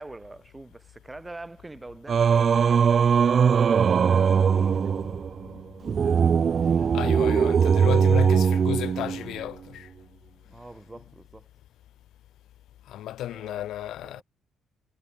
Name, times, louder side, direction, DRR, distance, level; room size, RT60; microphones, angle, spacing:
voice 1, 0.0-5.0 10.5-11.5 13.3-14.2, right 2 dB, 15° right, 5.7 m, -44 dB
Singing, 2.1-9.4, right 7 dB, 50° right, 0.3 m, -21 dB
voice 2, 6.9-9.9 12.9-14.2, left 13 dB, 80° left, 1.5 m, -33 dB
cardioid pair, 90°, 0 cm